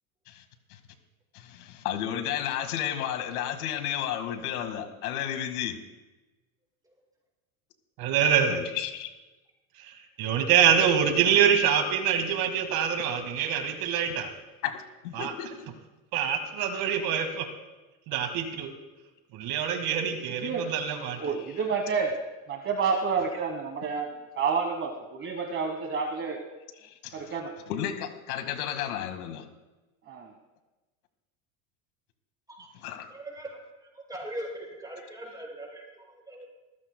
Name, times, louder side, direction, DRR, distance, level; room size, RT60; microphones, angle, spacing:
voice 1, 1.3-5.8 8.5-9.1 14.6-15.7 21.0-21.6 26.8-27.4 27.7-29.5 32.8-33.1, left 10 dB, 85° left, 8 dB, 1.8 m, -33 dB
voice 2, 8.0-8.6 9.8-14.3 15.2-15.3 16.1-17.5 18.1-18.7 19.3-21.3, right 8 dB, 55° right, 6 dB, 1.9 m, -25 dB
voice 3, 21.2-22.1 22.5-24.1 24.4-26.4 27.1-27.5 30.1-30.3, right 5 dB, 30° right, 3 dB, 1.3 m, -29 dB
voice 4, 33.1-36.5, right 1 dB, 10° right, -2 dB, 6.1 m, -40 dB
25.0 x 14.5 x 2.2 m, 1.1 s
supercardioid pair, 130°, 43 cm